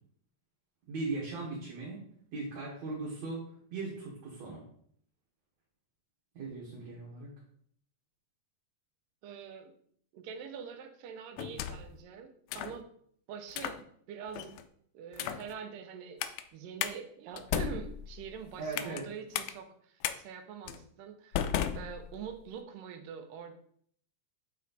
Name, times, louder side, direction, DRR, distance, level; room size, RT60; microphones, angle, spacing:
voice 1, 0.9-2.0 2.3-3.4 3.7-4.6 6.3-7.3 18.6-19.1, right 3 dB, 60° right, -5 dB, 2.6 m, -38 dB
voice 2, 9.2-9.7 10.1-12.9 13.3-14.6 14.9-16.2 16.5-23.5, right 7 dB, 85° right, 7 dB, 2.5 m, -44 dB
sound 1, 11.4-12.0 12.5-12.8 13.5-13.8 14.3-14.6 15.1-15.5 16.2-16.4 16.8-16.9 17.4-19.0 19.3-19.5 20.0-20.2 20.7-20.8 21.3-22.4, left 10 dB, 80° left, 1.8 m, -35 dB
8.2 x 4.3 x 4.1 m, 0.63 s
omnidirectional pair, 3.8 m